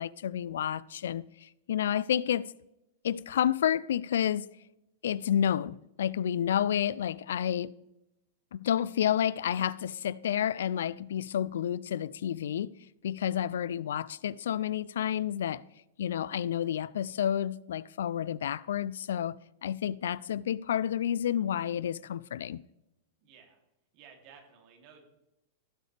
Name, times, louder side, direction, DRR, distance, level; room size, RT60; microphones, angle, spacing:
voice 1, 0.0-2.5 3.0-4.5 5.0-7.7 8.5-12.7 13.0-15.6 16.0-22.6, left 10 dB, 75° left, 0.3 m, -30 dB
voice 2, 23.2-23.6 23.9-25.1, right 6 dB, 50° right, 2.8 m, -55 dB
17.0 x 7.8 x 3.4 m
hypercardioid pair, 110°, 0 cm